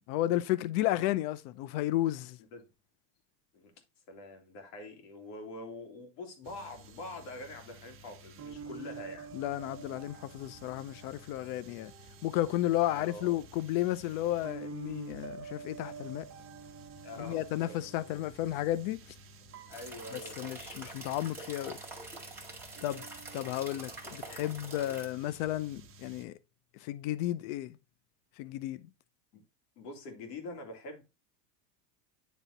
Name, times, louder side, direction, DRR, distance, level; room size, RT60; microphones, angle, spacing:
voice 1, 0.1-2.4 9.3-11.9 12.2-16.3 17.2-19.0 20.1-21.8 22.8-23.0 23.3-26.4 26.8-27.8 28.4-28.8, left 14 dB, 55° left, 0.7 m, -33 dB
voice 2, 4.1-9.3 12.8-13.4 17.0-17.8 19.7-20.6 22.9-23.0 29.3-29.4 29.8-31.0, left 2 dB, 70° left, 2.6 m, -45 dB
sound 1, 6.4-26.2, right 4 dB, 25° right, 1.0 m, -49 dB
sound 2, 19.7-25.1, right 3 dB, 5° right, 1.9 m, -46 dB
9.3 x 3.4 x 3.8 m
supercardioid pair, 130°, 50 cm